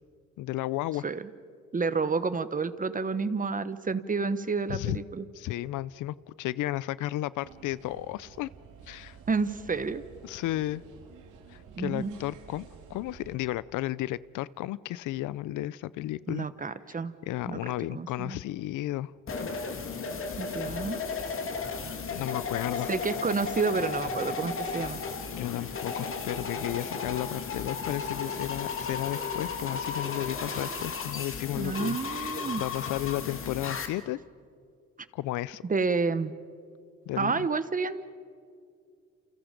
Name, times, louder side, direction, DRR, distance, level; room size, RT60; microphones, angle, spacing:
voice 1, 0.4-1.0 4.7-5.0 5.3-8.5 8.9-9.2 10.2-10.8 11.5-16.5 17.3-19.1 22.1-22.9 25.3-34.2 35.1-35.6 37.1-37.5, left 15 dB, 85° left, 20 dB, 0.6 m, -33 dB
voice 2, 1.7-5.2 9.3-10.0 11.7-12.2 16.3-17.1 17.5-17.6 17.9-18.4 20.4-21.0 22.9-25.0 31.5-32.6 35.7-36.3 37.2-38.1, right 4 dB, 25° right, 13 dB, 1.2 m, -30 dB
sound 1, 7.4-13.4, right 6 dB, 85° right, 2.9 m, -51 dB
sound 2, 19.3-33.9, left 5 dB, 45° left, 2.5 m, -34 dB
29.5 x 28.5 x 5.2 m, 2.3 s
cardioid pair, 90°, 30 cm